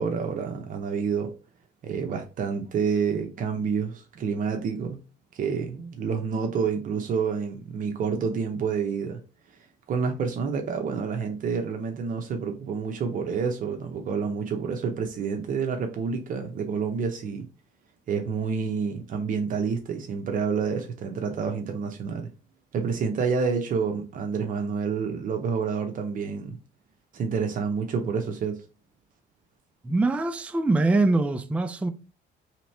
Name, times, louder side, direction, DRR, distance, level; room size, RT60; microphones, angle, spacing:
voice 1, 0.0-1.3 1.8-5.0 5.3-9.2 9.9-17.5 18.1-22.3 22.7-26.6 27.1-28.6, right 5 dB, 50° right, 0.7 m, -28 dB
voice 2, 29.8-31.9, right 2 dB, 10° right, 0.3 m, -23 dB
3.2 x 3.0 x 4.2 m
cardioid pair, 110°, 17 cm